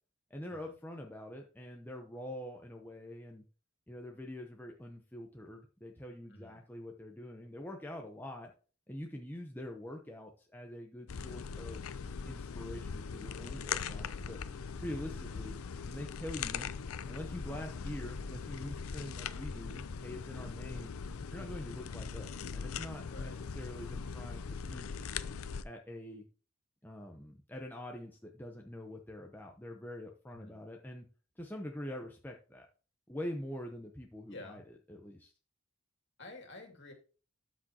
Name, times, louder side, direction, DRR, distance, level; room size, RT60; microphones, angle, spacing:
voice 1, 0.3-3.4 3.9-8.5 8.9-11.8 12.2-14.4 14.8-15.6 15.9-16.7 17.1-21.0 21.3-25.1 25.6-26.2 26.8-31.1 31.4-32.7 33.1-34.6 34.9-35.3, left 1 dB, 10° left, 1 dB, 0.7 m, -45 dB
sound 1, 11.1-25.6, left 5 dB, 85° left, 0.6 m, -40 dB
voice 2, 20.3-20.6 23.1-23.4 30.3-30.6 34.3-34.6 36.2-36.9, left 2 dB, 55° left, 3 dB, 2.4 m, -50 dB
12.5 x 6.2 x 2.9 m, 0.37 s
head